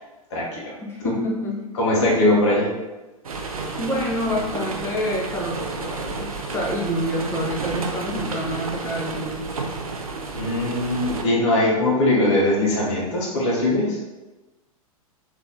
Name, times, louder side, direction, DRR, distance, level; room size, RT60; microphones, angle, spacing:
voice 1, 0.3-0.7 1.0-1.1 1.8-2.7 10.3-14.0, left 1 dB, 50° left, -3 dB, 1.2 m, -21 dB
voice 2, 0.8-1.7 3.8-9.5, equal, 15° left, -3 dB, 0.8 m, -27 dB
sound 1, 3.2-11.2, right 3 dB, 70° right, 0.6 m, -31 dB
3.8 x 2.9 x 3.8 m, 1.1 s
figure-of-eight pair, 100°, 19 cm